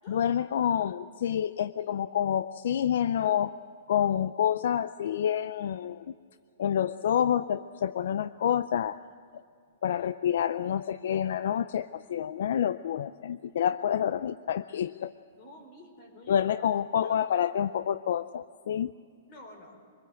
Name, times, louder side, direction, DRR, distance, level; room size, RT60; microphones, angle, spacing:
voice 1, 0.1-3.6 3.9-6.1 6.6-9.0 9.8-15.1 16.3-18.9, left 9 dB, 65° left, 15 dB, 0.5 m, -28 dB
voice 2, 15.3-16.5 17.0-17.2 19.3-19.8, left 1 dB, 30° left, 3 dB, 4.9 m, -50 dB
24.5 x 20.0 x 7.8 m, 2.2 s
hypercardioid pair, 160°, 0 cm